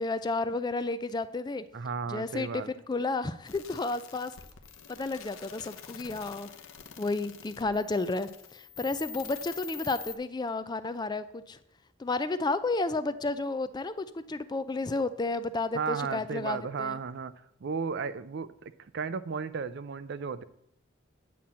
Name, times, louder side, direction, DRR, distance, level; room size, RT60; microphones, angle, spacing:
voice 1, 0.0-1.6 2.1-4.3 4.9-6.5 7.0-11.6 12.0-17.0, left 3 dB, 20° left, 12 dB, 0.4 m, -32 dB
voice 2, 1.7-2.7 15.7-17.3 17.6-20.4, right 5 dB, 55° right, 14 dB, 0.5 m, -34 dB
sound 1, 3.5-10.2, left 8 dB, 90° left, 0.9 m, -46 dB
9.3 x 4.3 x 7.4 m, 0.74 s
head